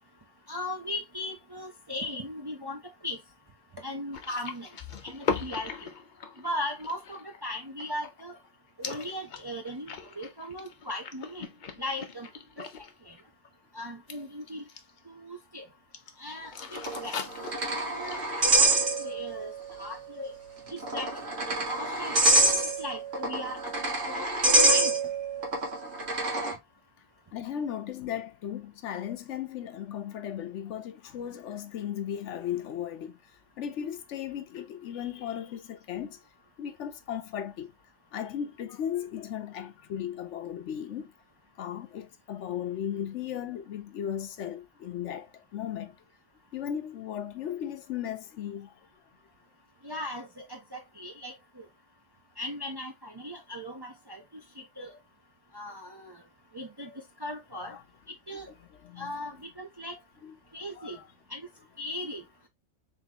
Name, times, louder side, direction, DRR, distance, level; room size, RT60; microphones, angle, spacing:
voice 1, 0.5-3.2 3.8-4.7 5.0-5.9 6.4-8.4 8.8-9.9 10.2-11.5 11.8-12.3 12.6-13.2 13.7-14.7 15.1-15.6 16.2-18.2 18.5-18.7 19.0-19.5 19.8-20.3 20.7-21.1 21.5-22.2 22.6-24.9 49.8-51.6 52.4-54.2 54.6-54.9 55.5-56.2 56.5-56.9 57.2-57.8 58.3-58.5 59.0-60.0 60.5-61.0 61.3-61.4 61.8-62.2, left 1 dB, 30° right, 0.5 m, -38 dB
sound 1, 4.1-8.5 8.8-12.9 13.2-13.5 14.1-15.0 15.9-16.1 16.4-18.3, left 5 dB, 50° left, 0.6 m, -39 dB
sound 2, 16.8-19.4 19.7-19.8 20.7-26.5, right 2 dB, 60° right, 1.7 m, -26 dB
voice 2, 27.3-33.2 33.6-36.2 36.6-37.7 38.1-41.1 41.6-46.0 46.5-48.7 57.7-57.8 58.8-59.1 60.2-60.3 60.8-61.0, left 9 dB, 70° left, 0.9 m, -36 dB
3.7 x 3.6 x 2.8 m
omnidirectional pair, 1.3 m